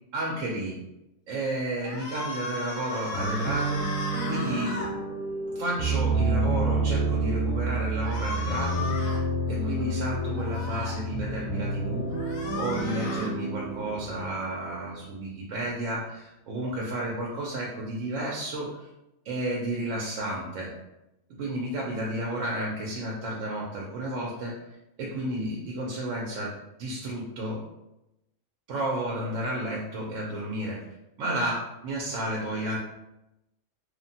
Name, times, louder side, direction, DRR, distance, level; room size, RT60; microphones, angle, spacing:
voice 1, 0.1-0.8 1.3-3.9 4.3-5.0 5.5-9.2 9.5-12.1 12.5-18.9 19.2-20.7 21.4-24.5 25.0-26.5 26.8-27.6 28.7-30.8 31.2-32.8, right 1 dB, 75° right, -3 dB, 0.9 m, -32 dB
sound 1, 1.8-4.9 8.0-9.2 10.4-10.9 12.1-13.3, left 3 dB, 85° left, 1.0 m, -36 dB
sound 2, 3.1-14.8, right 2 dB, 20° right, 0.8 m, -29 dB
3.1 x 2.1 x 2.6 m, 0.91 s
omnidirectional pair, 1.4 m